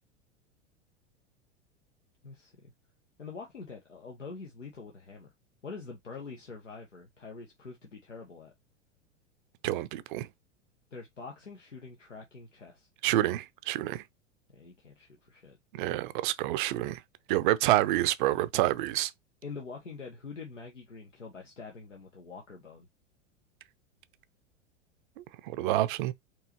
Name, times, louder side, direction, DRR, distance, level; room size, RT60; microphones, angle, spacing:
voice 1, 2.2-2.7 3.2-5.3 5.6-8.5 10.9-12.9 14.5-15.6 19.4-22.9, left 4 dB, 85° left, 0.9 m, -45 dB
voice 2, 9.6-10.3 13.0-14.0 15.7-17.0 17.3-19.1 25.2-26.1, right 15 dB, 45° right, 0.5 m, -28 dB
4.6 x 3.0 x 2.9 m
figure-of-eight pair, 90°, 36 cm